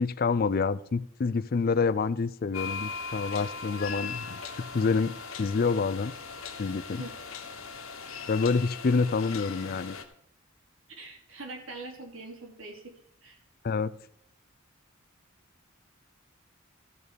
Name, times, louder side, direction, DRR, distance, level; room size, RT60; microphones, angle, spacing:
voice 1, 0.0-6.1 6.6-7.0 8.3-10.0 13.6-13.9, left 4 dB, 45° left, 0.4 m, -27 dB
sound 1, 2.5-10.0, left 5 dB, 85° left, 1.4 m, -39 dB
voice 2, 11.0-12.9 13.2-13.4, right 2 dB, 80° right, 2.9 m, -43 dB
14.0 x 6.4 x 5.2 m
head